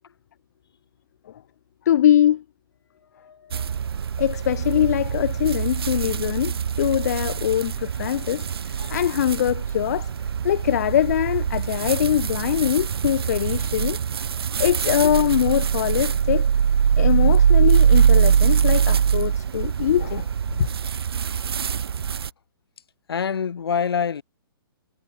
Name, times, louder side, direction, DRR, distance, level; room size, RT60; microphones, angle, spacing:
voice 1, 1.9-2.4 3.4-3.7 4.2-10.1 10.4-14.0 14.6-16.5 17.0-20.3 20.6-20.7, left 11 dB, 45° left, 0.6 m, -22 dB
voice 2, 3.1-3.6 23.1-24.2, left 6 dB, 80° left, 4.7 m, -26 dB
sound 1, 3.5-22.3, right 7 dB, 85° right, 0.7 m, -22 dB
hypercardioid pair, 165°, 13 cm